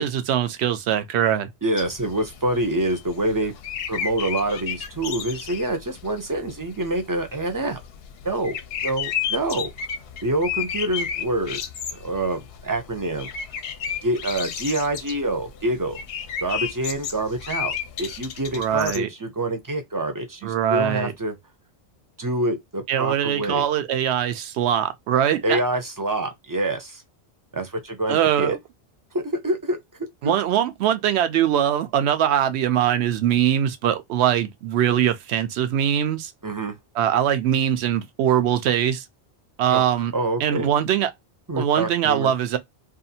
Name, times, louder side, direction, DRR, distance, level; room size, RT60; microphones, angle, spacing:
voice 1, 0.0-1.5 18.6-19.1 20.4-21.1 22.9-25.6 28.1-28.6 30.2-36.3 37.0-39.1 39.6-40.1 40.4-41.1 41.5-42.6, right 10 dB, 80° right, 0.8 m, -22 dB
voice 2, 1.6-3.5 3.9-7.8 8.2-9.7 10.2-11.6 11.9-13.3 14.0-16.0 16.4-21.3 22.2-23.6 25.4-27.0 27.5-28.6 29.1-30.3 36.4-36.7 39.7-39.8 40.1-40.7 41.5-42.3, right 1 dB, 25° right, 0.5 m, -26 dB
sound 1, 1.8-19.0, left 8 dB, 70° left, 0.7 m, -33 dB
2.6 x 2.4 x 2.7 m
omnidirectional pair, 1.1 m